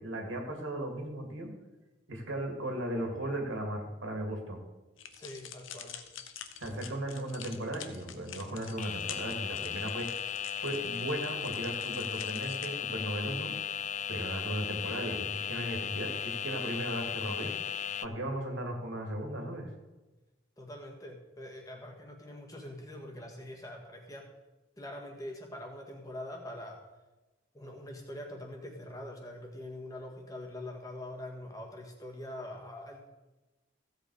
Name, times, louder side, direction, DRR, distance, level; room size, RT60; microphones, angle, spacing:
voice 1, 0.0-1.5 2.1-4.6 6.6-10.2 10.6-13.5 14.1-17.5 18.0-19.7, right 1 dB, 80° right, 2 dB, 2.4 m, -36 dB
sound 1, 5.0-12.7, left 9 dB, 85° left, 1.0 m, -47 dB
voice 2, 5.1-6.0 20.6-24.3 24.8-26.8 27.5-33.1, left 1 dB, 20° left, 0 dB, 1.6 m, -44 dB
sound 2, 8.8-18.1, left 9 dB, 35° left, 0.3 m, -36 dB
15.0 x 8.0 x 4.9 m, 1.1 s
head